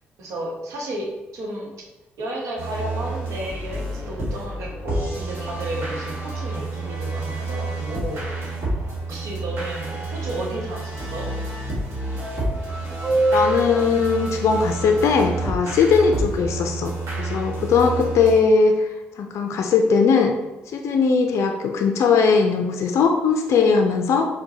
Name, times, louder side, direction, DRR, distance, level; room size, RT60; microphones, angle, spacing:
voice 1, 0.2-1.7 2.2-8.6 9.1-11.3, right 1 dB, 65° right, -1 dB, 0.8 m, -32 dB
sound 1, 2.6-18.4, right 2 dB, 50° right, 1.4 m, -29 dB
sound 2, 3.0-16.6, right 2 dB, 30° right, 1.1 m, -33 dB
voice 2, 13.3-20.3 20.7-24.3, left 5 dB, 55° left, 4 dB, 0.4 m, -19 dB
4.6 x 2.1 x 2.7 m, 1.1 s
hypercardioid pair, 45°, 6 cm